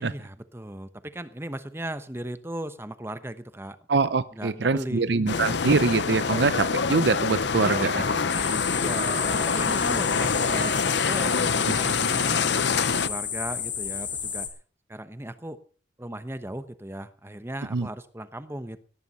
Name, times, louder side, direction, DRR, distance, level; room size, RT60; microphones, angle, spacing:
voice 1, 0.0-3.8 4.3-5.5 7.5-14.5 14.9-15.6 16.0-18.8, right 1 dB, 15° right, 12 dB, 0.9 m, -37 dB
voice 2, 3.9-7.9 17.7-17.9, right 4 dB, 60° right, 15 dB, 0.6 m, -24 dB
sound 1, 5.3-13.1, left 5 dB, 65° left, 0.7 m, -25 dB
Animal, 6.1-6.9 7.5-8.2 8.8-9.6 10.3-10.9, right 3 dB, 40° right, 4.9 m, -37 dB
sound 2, 8.3-14.5, left 7 dB, 25° left, 2.9 m, -32 dB
17.5 x 10.5 x 5.5 m, 0.43 s
head